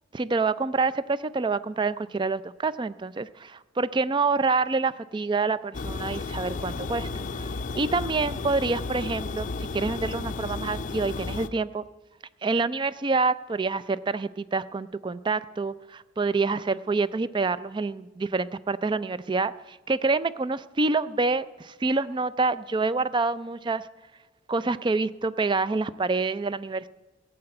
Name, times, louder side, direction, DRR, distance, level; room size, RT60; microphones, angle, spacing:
voice 1, 0.1-11.8 12.4-23.9 24.5-26.9, right 3 dB, 25° right, 16 dB, 0.4 m, -27 dB
sound 1, 5.7-11.5, left 3 dB, 40° left, 0.5 m, -33 dB
15.5 x 6.8 x 8.8 m, 1.2 s
head